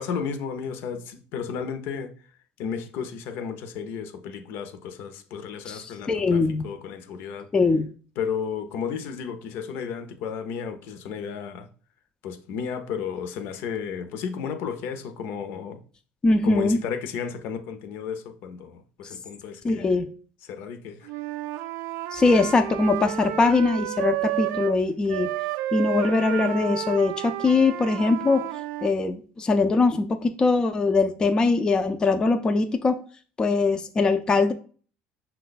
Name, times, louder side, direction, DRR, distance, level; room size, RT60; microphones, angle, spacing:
voice 1, 0.0-2.1 2.6-7.5 8.2-11.7 12.2-15.8 16.4-20.0 20.4-21.1, left 6 dB, 65° left, 0.6 m, -33 dB
voice 2, 6.1-6.7 7.5-7.9 16.2-16.8 19.6-20.1 22.1-25.3 25.7-28.4 28.8-33.0 33.4-34.5, left 3 dB, 20° left, 0.4 m, -22 dB
Wind instrument woodwind instrument, 21.0-24.8 25.1-28.9, right 14 dB, 70° right, 0.3 m, -31 dB
5.7 x 2.2 x 3.9 m
cardioid pair, 135°, 4 cm